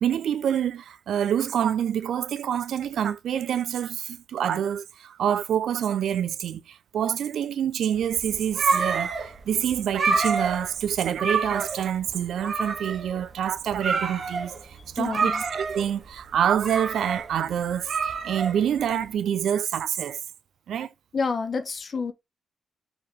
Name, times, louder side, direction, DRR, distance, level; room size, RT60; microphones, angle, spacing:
voice 1, 0.0-20.2 20.7-20.9, right 9 dB, 75° right, 0.4 m, -27 dB
sound 1, 8.0-19.0, right 4 dB, 45° right, 0.7 m, -28 dB
voice 2, 15.0-15.4 21.1-22.1, left 5 dB, 35° left, 0.6 m, -28 dB
4.8 x 3.2 x 3.5 m
wide cardioid pair, 175°, 0 cm